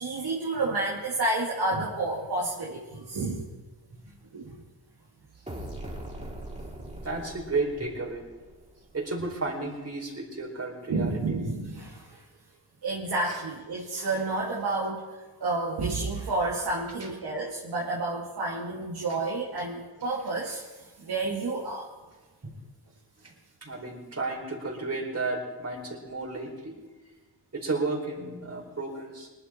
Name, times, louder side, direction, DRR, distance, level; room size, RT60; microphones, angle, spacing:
voice 1, 0.0-3.5 4.3-4.5 6.8-6.9 10.9-12.2 12.8-15.1 15.4-21.9, right 2 dB, 75° right, -3 dB, 2.2 m, -30 dB
sound 1, 5.5-9.1, right 1 dB, 20° right, 4.4 m, -41 dB
voice 2, 7.0-8.3 8.9-11.2 13.3-13.4 17.0-17.1 22.4-22.6 23.2-23.3 23.6-26.8 27.5-29.3, right 3 dB, 40° right, 1 dB, 4.4 m, -33 dB
20.0 x 11.5 x 4.4 m, 1.3 s
cardioid pair, 55°, 39 cm